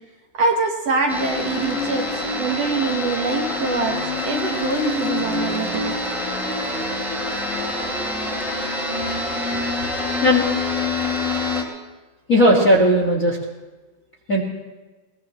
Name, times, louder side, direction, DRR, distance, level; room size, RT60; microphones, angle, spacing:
voice 1, 0.3-4.0 4.2-6.0 9.5-9.7, right 3 dB, 55° right, 1 dB, 2.2 m, -24 dB
sound 1, 1.1-11.6, left 2 dB, ahead, 3.2 m, -25 dB
voice 2, 12.3-13.4 14.3-14.4, equal, 35° left, 0 dB, 1.5 m, -16 dB
22.0 x 20.0 x 3.1 m, 1.2 s
omnidirectional pair, 4.0 m